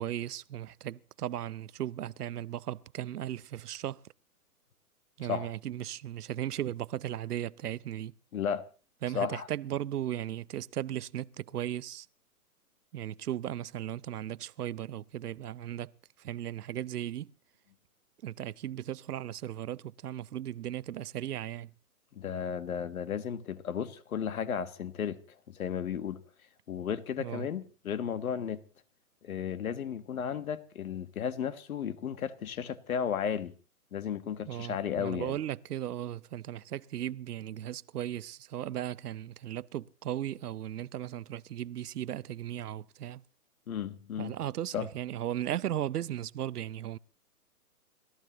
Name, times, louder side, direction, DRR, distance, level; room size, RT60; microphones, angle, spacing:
voice 1, 0.0-4.0 5.2-8.1 9.0-12.1 12.9-15.9 16.2-17.3 18.2-21.7 27.2-27.5 34.5-43.2 44.2-47.0, right 11 dB, 80° right, 0.7 m, -36 dB
voice 2, 8.3-8.7 9.1-9.5 22.1-25.2 25.5-26.2 26.7-28.6 29.2-33.5 33.9-35.4 43.7-44.4 44.7-44.9, left 8 dB, 65° left, 1.6 m, -34 dB
30.0 x 14.5 x 3.0 m
hypercardioid pair, 165°, 46 cm